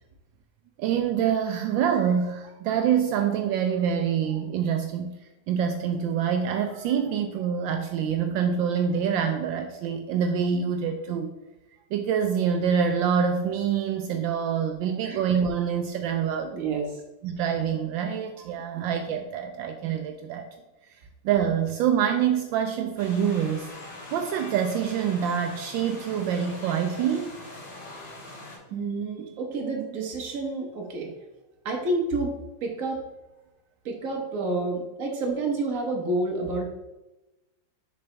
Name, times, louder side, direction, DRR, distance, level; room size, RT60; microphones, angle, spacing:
voice 1, 0.8-5.2 5.5-11.3 11.9-16.5 17.2-20.5 21.2-27.4, right 7 dB, 80° right, 5 dB, 1.3 m, -26 dB
voice 2, 16.5-17.0 18.7-18.8 28.7-31.1 31.6-32.3 32.6-33.0 33.8-36.6, right 2 dB, 50° right, 1 dB, 1.4 m, -29 dB
sound 1, 23.0-28.6, left 2 dB, 65° left, 2.7 m, -42 dB
6.7 x 5.1 x 3.3 m, 1.0 s
omnidirectional pair, 2.1 m